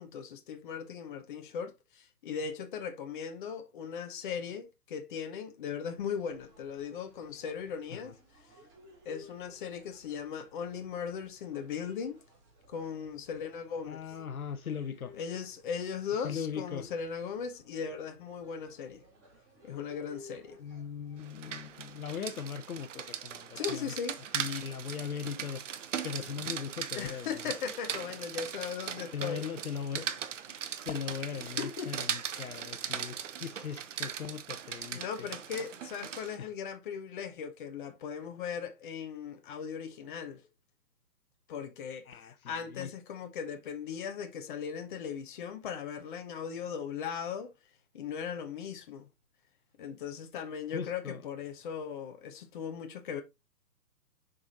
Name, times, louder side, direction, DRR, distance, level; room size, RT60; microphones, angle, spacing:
voice 1, 0.0-8.2 9.0-12.2 12.7-14.0 15.1-19.0 19.6-20.6 23.5-24.2 26.9-29.4 31.6-31.9 34.9-40.4 41.5-47.5 47.9-49.1 49.8-53.2, left 7 dB, 30° left, 0.9 m, -38 dB
sound 1, 6.1-22.2, left 1 dB, 30° right, 3.3 m, -58 dB
voice 2, 13.9-15.1 16.2-16.9 20.6-23.9 24.3-25.6 26.0-27.4 29.1-30.2 30.9-35.3 36.4-36.5 42.1-42.9 50.7-51.2, left 7 dB, 60° left, 1.0 m, -39 dB
Rain, 21.2-36.4, right 8 dB, 50° right, 0.8 m, -39 dB
7.1 x 5.2 x 2.8 m
figure-of-eight pair, 140°, 49 cm